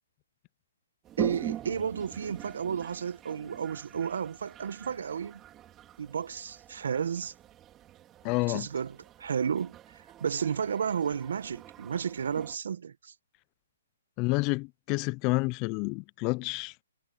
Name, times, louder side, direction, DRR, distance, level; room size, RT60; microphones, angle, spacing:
Toilet flush, 1.0-12.6, right 12 dB, 20° right, 4.0 m, -43 dB
voice 1, 1.2-5.4 6.0-7.3 8.5-13.1, right 7 dB, 70° right, 1.4 m, -32 dB
voice 2, 8.2-8.7 14.2-16.7, left 26 dB, 30° left, 0.5 m, -29 dB
hypercardioid pair, 145°, 0 cm